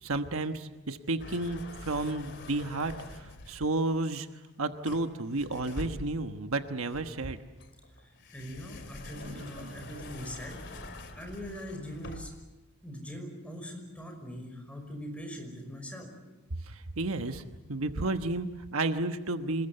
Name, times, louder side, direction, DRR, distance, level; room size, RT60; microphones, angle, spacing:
voice 1, 0.0-4.3 4.6-7.4 9.2-9.8 16.7-17.4 17.7-19.7, right 2 dB, 75° right, 7 dB, 1.2 m, -32 dB
sound 1, 1.2-3.8 4.9-6.4 6.9-12.5, left 2 dB, 55° left, 2.7 m, -45 dB
voice 2, 8.3-10.6 11.1-12.3 12.8-16.1, equal, 5° left, 3 dB, 5.7 m, -41 dB
26.5 x 21.0 x 8.1 m, 1.1 s
head